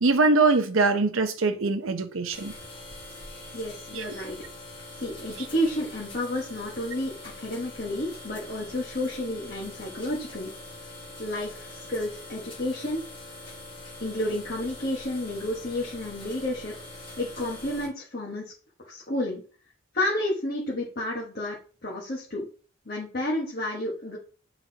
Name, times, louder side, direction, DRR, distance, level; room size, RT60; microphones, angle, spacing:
voice 1, 0.0-2.5 3.9-4.2, right 3 dB, 80° right, 0.8 m, -23 dB
sound 1, 2.3-17.9, left 2 dB, 25° left, 1.7 m, -43 dB
voice 2, 3.5-4.4 5.0-10.5 10.8-10.9 11.2-13.0 14.0-16.7 17.2-18.5 18.8-19.4 19.9-21.6 21.8-22.5 22.9-24.2, left 1 dB, 45° left, 1.3 m, -31 dB
9.1 x 4.0 x 2.8 m
head